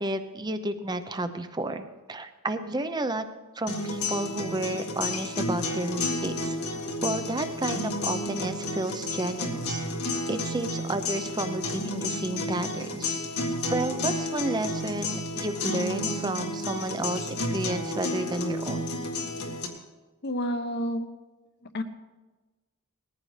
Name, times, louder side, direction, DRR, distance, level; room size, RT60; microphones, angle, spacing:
voice 1, 0.0-3.2 3.5-6.6 7.0-9.9 10.3-13.2 13.7-18.8, right 1 dB, 20° right, 9 dB, 0.7 m, -31 dB
sound 1, 3.7-19.7, left 1 dB, 85° left, 1.8 m, -31 dB
voice 2, 20.2-21.1 21.7-21.8, equal, 50° left, 9 dB, 1.0 m, -29 dB
19.0 x 14.5 x 3.3 m, 1.2 s
head